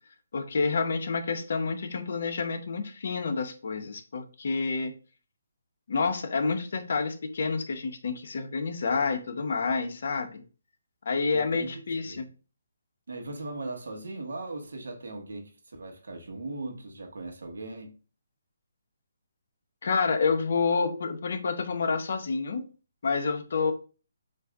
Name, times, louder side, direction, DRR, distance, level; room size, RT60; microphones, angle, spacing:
voice 1, 0.3-4.9 5.9-10.4 11.1-12.3 19.8-22.7 23.0-23.7, left 4 dB, 60° left, 0.8 m, -28 dB
voice 2, 11.3-12.3 13.1-17.9, right 2 dB, 85° right, 1.2 m, -39 dB
7.5 x 2.6 x 2.4 m
hypercardioid pair, 165°, 0 cm